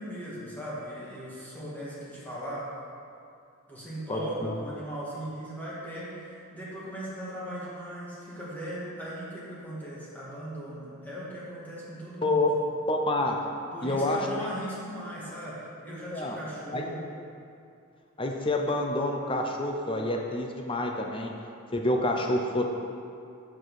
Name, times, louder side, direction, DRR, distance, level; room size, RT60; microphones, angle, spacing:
voice 1, 0.0-2.7 3.7-12.5 13.7-17.1, right 1 dB, 10° left, -8 dB, 1.7 m, -38 dB
voice 2, 4.1-4.5 12.2-12.5 12.9-13.4 13.8-14.2 15.9-16.4 16.7-16.8 18.2-21.3 21.7-22.7, left 2 dB, 25° left, 2 dB, 0.6 m, -28 dB
7.5 x 6.2 x 4.7 m, 2.5 s
head